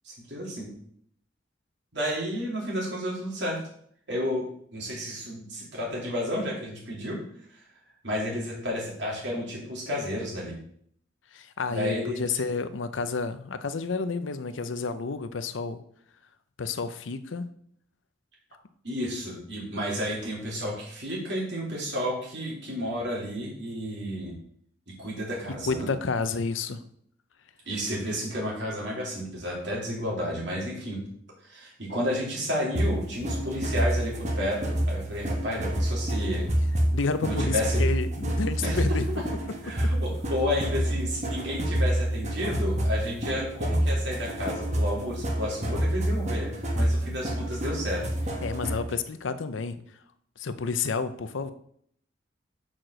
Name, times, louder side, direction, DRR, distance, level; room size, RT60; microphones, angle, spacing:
voice 1, 0.0-0.7 1.9-3.6 4.1-4.4 4.7-7.2 8.0-10.5 11.7-12.4 18.8-24.3 24.9-25.9 27.6-31.0 31.4-34.6 34.9-36.4 37.2-37.8 38.6-39.2 39.6-46.5 46.7-48.0, equal, 65° right, -3 dB, 3.0 m, -31 dB
voice 2, 11.3-15.8 16.6-17.5 25.7-26.8 36.9-39.0 39.8-39.9 48.4-49.8 50.4-51.5, left 4 dB, 90° left, 11 dB, 0.6 m, -30 dB
sound 1, 32.7-48.9, right 1 dB, 40° right, 1.3 m, -28 dB
5.9 x 4.8 x 6.4 m, 0.65 s
head